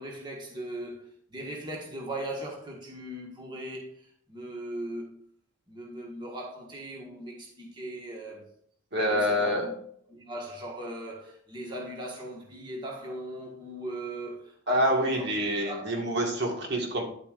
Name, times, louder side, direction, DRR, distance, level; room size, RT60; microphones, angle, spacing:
voice 1, 0.0-5.1 5.7-8.5 9.1-9.7 10.1-15.3 15.6-16.0, right 1 dB, 25° right, 1.6 m, -39 dB
voice 2, 8.9-9.7 14.7-17.0, equal, 55° right, 1.8 m, -26 dB
10.0 x 8.2 x 2.5 m
head